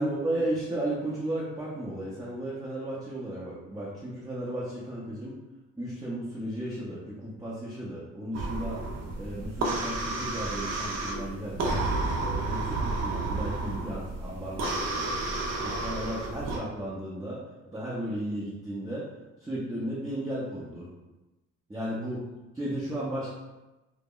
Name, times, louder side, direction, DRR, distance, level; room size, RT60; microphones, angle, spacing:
voice 1, 0.0-5.4 5.8-8.8 9.2-11.8 12.2-19.1 19.4-20.9 21.7-22.2 22.6-23.3, right 1 dB, 10° right, -7 dB, 0.6 m, -34 dB
sound 1, 8.3-16.6, right 2 dB, 60° right, 0.6 m, -31 dB
2.1 x 2.0 x 3.6 m, 1.1 s
cardioid pair, 90°, 30 cm